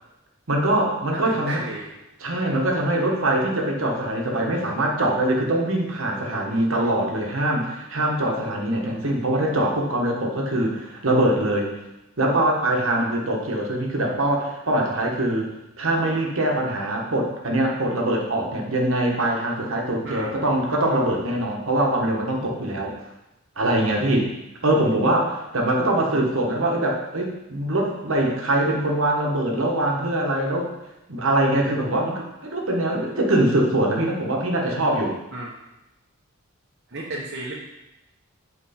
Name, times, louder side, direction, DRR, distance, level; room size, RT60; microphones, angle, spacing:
voice 1, 0.5-1.6 2.2-11.7 12.2-15.5 15.8-22.9 23.6-24.3 24.6-30.7 31.1-35.2, right 1 dB, 65° right, 0 dB, 1.3 m, -23 dB
voice 2, 1.1-1.9 20.0-20.4 35.3-35.6 36.9-37.5, right 2 dB, 50° right, -5 dB, 1.0 m, -33 dB
7.9 x 4.3 x 4.3 m, 0.94 s
head